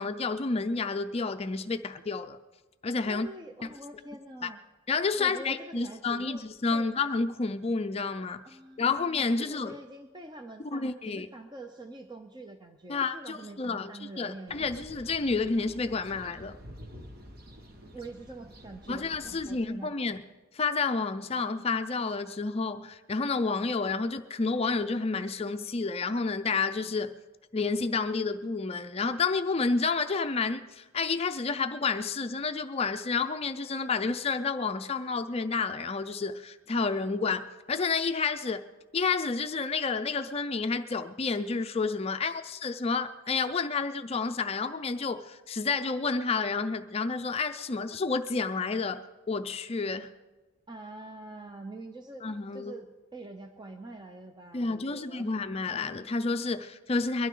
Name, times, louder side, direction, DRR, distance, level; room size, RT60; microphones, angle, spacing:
voice 1, 0.0-2.4 2.8-3.3 4.4-4.5 4.9-8.4 8.8-9.8 10.7-11.3 12.9-13.9 14.2-16.6 18.9-20.2 20.5-27.1 27.5-38.6 38.9-50.1 52.2-52.7 54.5-57.3, left 4 dB, 30° left, 9 dB, 0.4 m, -30 dB
voice 2, 3.0-4.6 5.2-6.5 6.7-7.0 8.4-9.0 9.4-14.7 17.9-19.9 50.7-52.2 52.5-55.3, right 2 dB, 20° right, 5 dB, 0.7 m, -45 dB
sound 1, 14.5-19.6, equal, 45° right, 1.3 m, -48 dB
22.5 x 12.5 x 3.8 m, 1.2 s
head